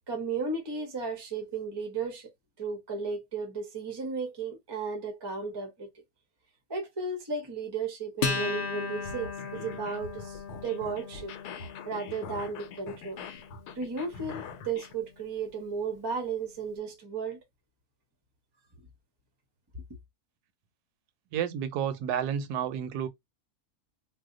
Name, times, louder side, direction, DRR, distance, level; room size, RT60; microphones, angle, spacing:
voice 1, 0.1-2.3 2.6-5.9 6.7-11.3 11.8-13.2 13.8-17.4, right 4 dB, 30° right, 0.4 m, -34 dB
Acoustic guitar, 8.2-15.0, left 5 dB, 65° left, 0.5 m, -37 dB
sound 1, 8.9-14.9, left 5 dB, 85° left, 1.2 m, -44 dB
voice 2, 21.3-23.1, right 8 dB, 80° right, 1.1 m, -30 dB
2.7 x 2.1 x 3.6 m
omnidirectional pair, 1.6 m